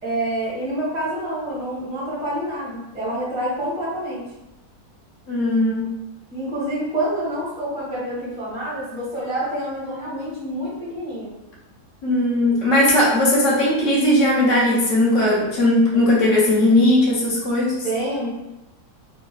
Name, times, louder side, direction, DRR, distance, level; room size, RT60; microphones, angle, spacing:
voice 1, 0.0-4.3 6.3-11.3 17.8-18.3, right 1 dB, 5° right, -7 dB, 0.6 m, -27 dB
voice 2, 5.3-5.9 12.0-17.8, left 1 dB, 60° left, -4 dB, 1.2 m, -18 dB
3.2 x 2.4 x 2.3 m, 0.92 s
omnidirectional pair, 1.6 m